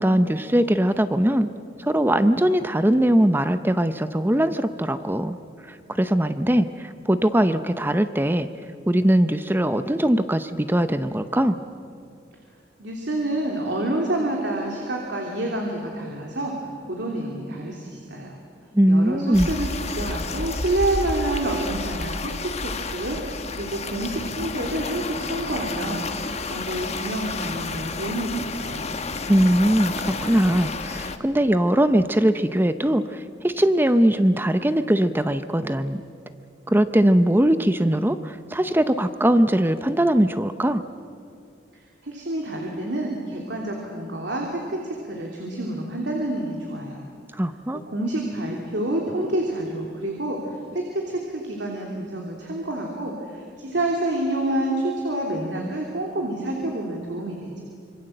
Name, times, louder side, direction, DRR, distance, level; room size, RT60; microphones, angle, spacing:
voice 1, 0.0-1.5 1.8-5.4 5.9-8.5 8.9-11.6 18.7-19.5 29.3-36.0 36.7-40.8 47.4-47.8, right 1 dB, 10° right, 11 dB, 0.7 m, -20 dB
voice 2, 12.8-16.5 16.9-18.4 18.9-28.9 42.0-47.0 47.9-50.4 50.7-57.6, right 1 dB, 65° right, 0 dB, 3.0 m, -28 dB
sound 1, 19.3-31.2, left 3 dB, 35° left, 1.2 m, -31 dB
26.0 x 24.0 x 7.8 m, 2.4 s
head